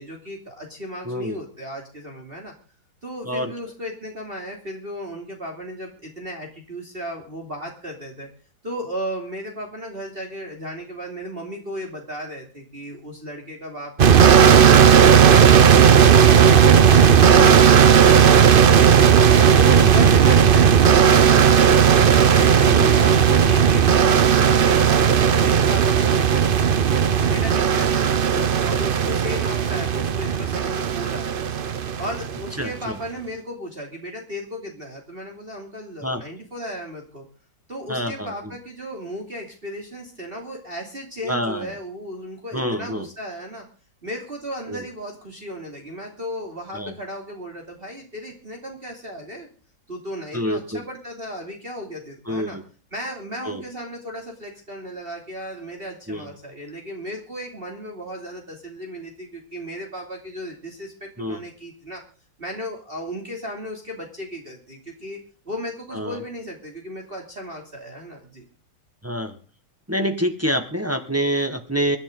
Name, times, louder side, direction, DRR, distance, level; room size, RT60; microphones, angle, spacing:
voice 1, 0.0-2.5 3.0-8.3 8.6-18.9 19.6-21.7 22.1-26.8 27.2-31.4 32.0-37.3 37.7-43.6 44.0-49.5 49.9-52.6 52.9-62.0 62.4-65.2 65.4-68.4, equal, 30° right, 1 dB, 3.0 m, -35 dB
voice 2, 1.0-1.4 3.2-3.5 19.7-20.1 22.7-23.0 28.3-28.5 32.6-33.0 36.0-36.2 37.9-38.6 41.2-41.8 42.5-43.1 44.7-44.8 46.7-47.0 50.3-50.8 52.2-52.6 53.4-53.6 56.1-56.3 61.2-61.4 65.9-66.2 69.0-69.4 69.9-72.0, equal, 10° right, 6 dB, 1.4 m, -27 dB
sound 1, 14.0-32.6, right 7 dB, 90° right, 0.4 m, -15 dB
24.5 x 11.0 x 3.8 m, 0.38 s
omnidirectional pair, 2.1 m